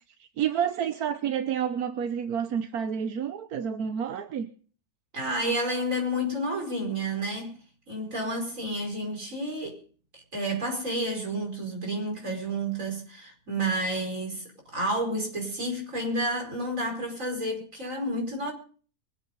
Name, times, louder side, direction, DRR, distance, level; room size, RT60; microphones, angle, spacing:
voice 1, 0.2-4.5, right 8 dB, 85° right, 1.4 m, -29 dB
voice 2, 5.1-7.6 7.9-9.8 10.3-18.5, right 1 dB, 60° right, 5.5 m, -30 dB
24.5 x 8.2 x 5.3 m
omnidirectional pair, 1.6 m